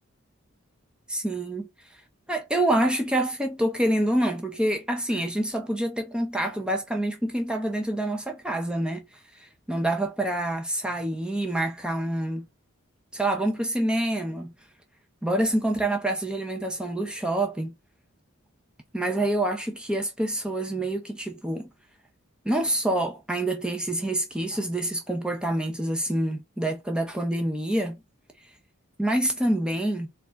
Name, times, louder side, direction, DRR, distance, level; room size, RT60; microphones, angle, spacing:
voice 1, 1.1-2.0 2.3-9.1 9.3-12.5 13.1-14.5 15.2-17.7 18.9-21.7 22.4-28.0 29.0-30.1, right 1 dB, 5° right, 0.5 m, -27 dB
4.5 x 2.4 x 3.9 m
head